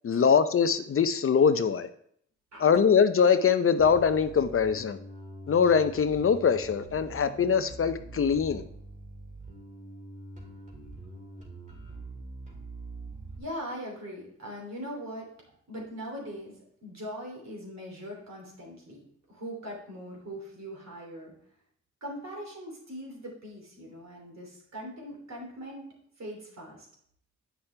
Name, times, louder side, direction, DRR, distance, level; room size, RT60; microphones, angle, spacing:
voice 1, 0.0-1.9 2.6-5.0 5.5-8.6, left 6 dB, 45° left, 10 dB, 0.6 m, -23 dB
Bass guitar, 3.8-13.4, right 2 dB, 25° right, 2.3 m, -44 dB
voice 2, 13.4-15.3 15.7-19.0 19.3-21.3 22.0-26.9, equal, 60° right, -1 dB, 3.0 m, -41 dB
8.2 x 5.9 x 3.3 m, 0.66 s
cardioid pair, 65°, 30 cm